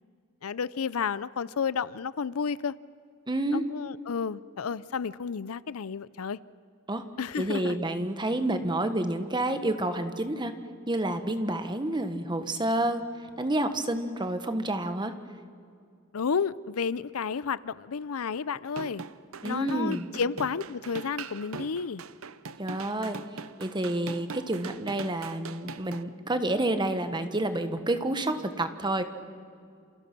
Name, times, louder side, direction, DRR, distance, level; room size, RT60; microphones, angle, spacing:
voice 1, 0.4-2.8 3.5-6.4 7.2-7.8 16.1-19.0 19.4-22.0, left 6 dB, 80° left, 19 dB, 0.6 m, -31 dB
voice 2, 3.3-3.6 6.9-7.1 7.4-10.5 10.9-13.0 13.4-15.1 19.4-20.0 22.6-23.2 23.6-29.0, right 1 dB, 20° right, 9 dB, 1.4 m, -29 dB
sound 1, 18.7-26.0, right 5 dB, 70° right, 0.8 m, -41 dB
28.0 x 28.0 x 6.1 m, 2.3 s
head